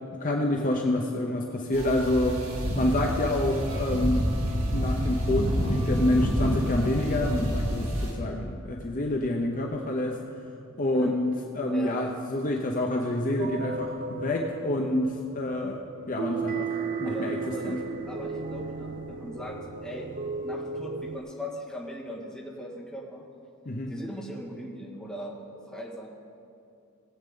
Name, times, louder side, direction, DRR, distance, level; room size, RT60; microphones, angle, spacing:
voice 1, 0.2-2.4 2.8-4.3 4.7-10.2 10.8-15.8 16.1-16.7 17.0-17.4 17.6-17.8 23.7-23.9, left 1 dB, 40° left, 1 dB, 0.7 m, -27 dB
sound 1, 1.7-8.1, equal, 75° right, 2.4 m, -28 dB
sound 2, 13.4-21.2, right 4 dB, 40° right, 0.6 m, -35 dB
voice 2, 16.9-23.2 23.9-26.1, equal, 5° left, -4 dB, 1.7 m, -39 dB
19.0 x 8.0 x 3.8 m, 2.6 s
head